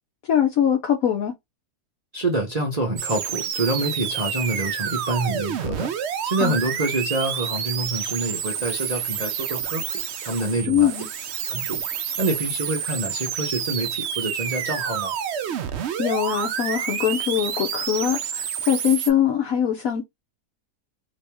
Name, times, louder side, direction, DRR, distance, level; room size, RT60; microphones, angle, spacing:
voice 1, 0.3-1.3 6.4-6.6 10.7-11.1 16.0-20.0, left 9 dB, 60° left, 1.0 m, -22 dB
voice 2, 2.1-5.9 6.2-10.9 11.5-11.8 12.2-15.1, right 2 dB, 35° right, 0.6 m, -27 dB
sound 1, 3.0-19.1, right 8 dB, 80° right, 0.6 m, -29 dB
3.0 x 2.9 x 3.3 m
omnidirectional pair, 1.8 m